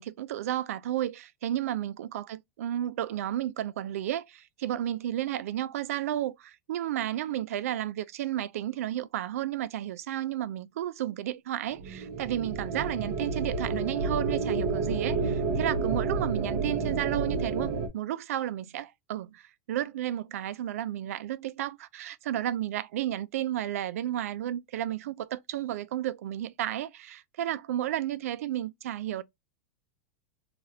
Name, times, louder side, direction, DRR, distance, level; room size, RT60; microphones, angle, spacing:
voice 1, 0.0-29.2, right 12 dB, 85° right, 0.4 m, -32 dB
sound 1, 11.8-17.9, right 4 dB, 40° right, 0.8 m, -30 dB
3.4 x 2.4 x 2.7 m
supercardioid pair, 170°, 8 cm